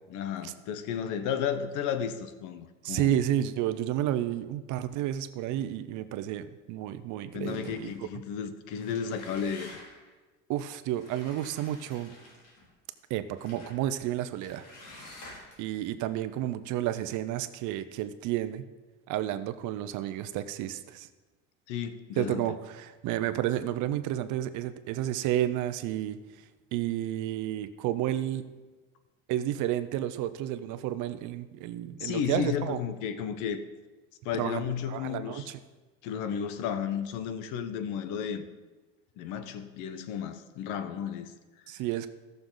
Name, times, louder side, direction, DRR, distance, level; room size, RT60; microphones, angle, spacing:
voice 1, 0.1-3.1 7.3-9.8 21.7-22.5 32.0-33.6 34.2-35.5 36.0-38.5 39.2-41.3, left 8 dB, 75° left, 11 dB, 1.0 m, -33 dB
voice 2, 2.8-7.9 10.5-12.1 13.1-14.7 15.1-15.3 15.6-18.7 19.1-21.1 22.2-26.2 26.7-28.4 29.3-32.8 34.3-35.6 41.7-42.1, right 12 dB, 70° right, 11 dB, 0.8 m, -31 dB
sound 1, 7.4-8.0 8.6-10.1 10.9-12.7 13.4-13.8 14.4-15.7, left 1 dB, 55° left, 3.3 m, -50 dB
16.5 x 6.7 x 4.0 m, 1.2 s
cardioid pair, 120°, 31 cm